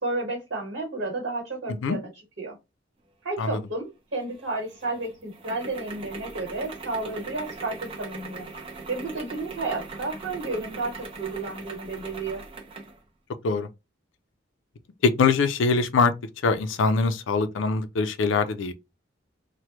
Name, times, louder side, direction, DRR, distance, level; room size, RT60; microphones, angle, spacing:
voice 1, 0.0-2.1 2.4-2.5 3.2-8.5 8.9-12.4, right 2 dB, 65° right, 1.2 m, -32 dB
sound 1, 4.2-13.0, right 3 dB, 30° right, 0.5 m, -40 dB
voice 2, 15.0-16.1 16.4-18.7, left 4 dB, 80° left, 0.4 m, -23 dB
3.2 x 2.1 x 2.9 m
head